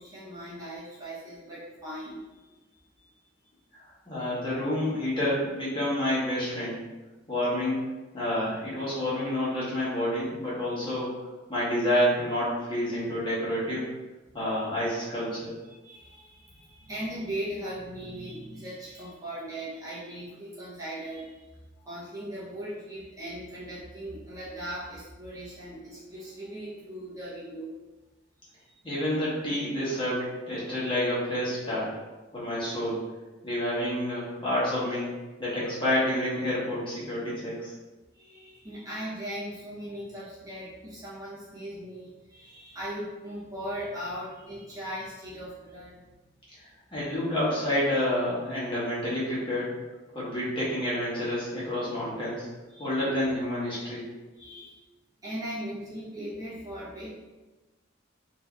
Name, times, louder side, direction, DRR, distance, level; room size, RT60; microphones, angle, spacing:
voice 1, 0.0-2.6 3.0-3.2 15.8-21.4 21.8-27.7 28.6-28.8 38.1-46.2 52.7-52.9 54.3-54.8 55.2-57.1, right 1 dB, 15° right, -9 dB, 0.7 m, -39 dB
voice 2, 3.7-6.8 7.3-7.8 8.1-11.2 11.5-13.9 14.3-15.5 28.8-31.9 32.3-33.0 33.4-35.1 35.4-37.7 46.9-49.7 50.1-52.5 52.8-54.0, left 1 dB, 25° left, -8 dB, 1.2 m, -29 dB
4.0 x 2.6 x 2.3 m, 1.2 s
head